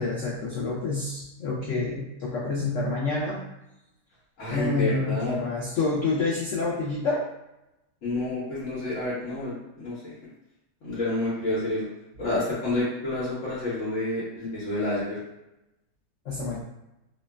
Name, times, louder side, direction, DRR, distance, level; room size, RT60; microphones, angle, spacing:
voice 1, 0.0-3.4 4.5-7.3 16.2-16.6, left 3 dB, 90° left, -5 dB, 0.6 m, -28 dB
voice 2, 4.4-5.4 8.0-10.1 10.8-11.9 12.2-15.2, left 2 dB, 55° left, -10 dB, 1.0 m, -29 dB
2.9 x 2.1 x 2.2 m, 0.92 s
omnidirectional pair, 1.9 m